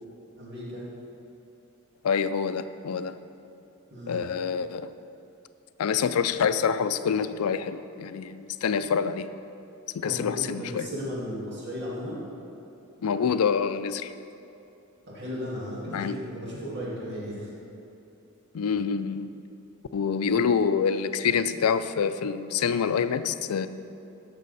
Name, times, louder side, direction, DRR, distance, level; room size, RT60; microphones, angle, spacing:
voice 1, 0.4-0.8 3.9-4.2 10.0-12.2 15.1-17.5, equal, 55° right, -6 dB, 2.2 m, -35 dB
voice 2, 2.0-3.2 4.1-4.9 5.8-9.3 9.9-10.9 13.0-14.1 15.9-16.2 18.5-19.3 19.9-23.7, left 6 dB, 85° left, 12 dB, 0.4 m, -26 dB
14.0 x 6.3 x 4.1 m, 2.8 s
head